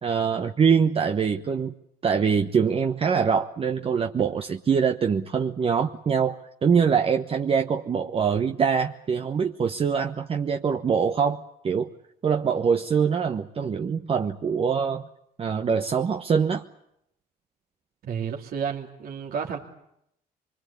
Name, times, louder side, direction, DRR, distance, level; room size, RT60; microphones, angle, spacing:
voice 1, 0.0-1.7 2.0-11.9 12.2-15.0 15.4-16.6, right 6 dB, 35° right, 6 dB, 1.1 m, -24 dB
voice 2, 18.0-19.6, right 7 dB, 60° right, 0 dB, 2.9 m, -31 dB
25.0 x 23.5 x 8.5 m, 0.76 s
cardioid pair, 110°, 17 cm